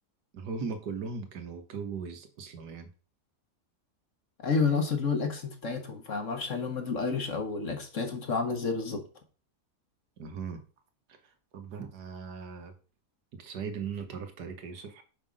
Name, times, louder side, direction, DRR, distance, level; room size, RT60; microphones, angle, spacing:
voice 1, 0.3-2.9 10.2-10.6 11.5-12.7 13.3-15.0, right 5 dB, 85° right, 1.8 m, -38 dB
voice 2, 4.4-9.0, left 4 dB, 50° left, 1.7 m, -30 dB
6.0 x 5.6 x 5.1 m
omnidirectional pair, 1.7 m